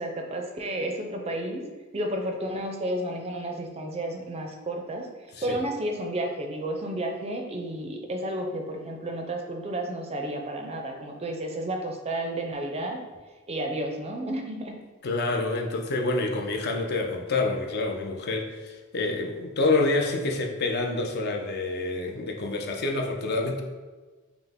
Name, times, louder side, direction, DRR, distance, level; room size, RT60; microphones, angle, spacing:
voice 1, 0.0-1.6 1.9-5.1 5.4-13.0 13.5-14.7, right 1 dB, 30° right, 3 dB, 0.4 m, -31 dB
voice 2, 15.0-23.6, left 2 dB, 50° left, 3 dB, 0.5 m, -27 dB
5.6 x 2.0 x 3.5 m, 1.3 s
head